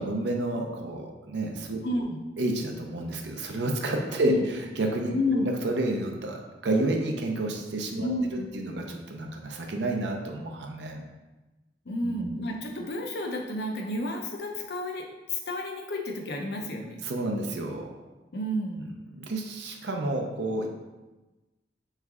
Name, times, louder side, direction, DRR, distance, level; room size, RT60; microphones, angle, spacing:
voice 1, 0.0-2.1 2.4-11.0 12.0-12.3 17.0-17.9 18.7-20.7, right 1 dB, 70° right, 2 dB, 0.6 m, -30 dB
voice 2, 1.8-2.2 4.2-4.4 5.1-5.5 8.0-8.5 11.9-17.0 18.3-18.9, left 1 dB, 60° left, 2 dB, 0.6 m, -31 dB
3.6 x 3.2 x 3.5 m, 1.1 s
head